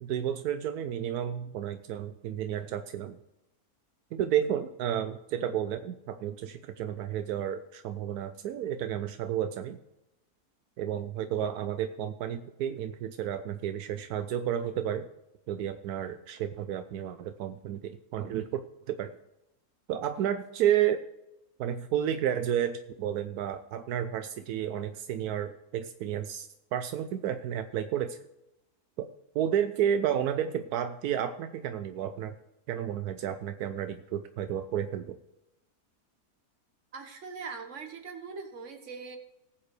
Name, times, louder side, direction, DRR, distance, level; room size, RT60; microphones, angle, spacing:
voice 1, 0.0-3.2 4.1-9.8 10.8-15.1 15.5-18.6 18.9-19.1 19.9-21.0 21.6-28.2 29.0-29.1 29.3-32.4 32.7-35.2, right 10 dB, 85° right, 9 dB, 1.1 m, -31 dB
voice 2, 36.9-39.2, right 5 dB, 55° right, 5 dB, 1.7 m, -41 dB
19.0 x 7.4 x 3.2 m, 0.89 s
omnidirectional pair, 1.6 m